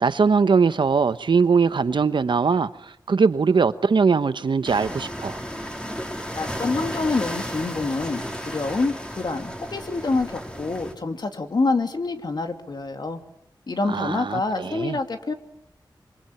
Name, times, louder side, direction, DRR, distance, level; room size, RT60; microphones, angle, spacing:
voice 1, 0.0-2.7 3.1-5.4 13.9-15.0, right 5 dB, 75° right, 1.1 m, -21 dB
sound 1, 4.6-10.9, equal, 10° left, 4.1 m, -33 dB
voice 2, 6.3-13.2 13.7-15.3, left 3 dB, 60° left, 2.6 m, -26 dB
26.5 x 24.5 x 9.0 m
wide cardioid pair, 105°, 8 cm